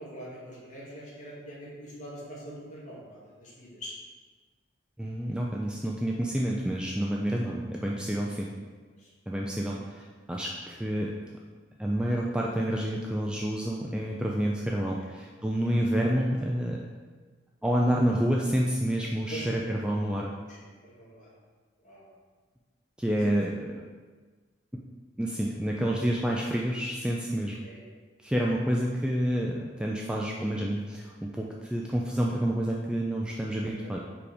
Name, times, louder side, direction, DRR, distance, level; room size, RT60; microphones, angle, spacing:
voice 1, 0.0-3.9 9.0-9.1 15.0-15.1 19.3-19.4 20.5-21.3 21.8-22.1 27.6-27.8 33.7-33.9, right 1 dB, 40° left, -6 dB, 2.0 m, -44 dB
voice 2, 5.0-8.5 9.3-11.1 11.8-16.9 17.6-20.3 23.0-23.8 24.7-24.8 25.2-27.6 28.2-34.0, right 1 dB, 5° right, -2 dB, 0.4 m, -29 dB
5.2 x 4.9 x 4.8 m, 1.4 s
head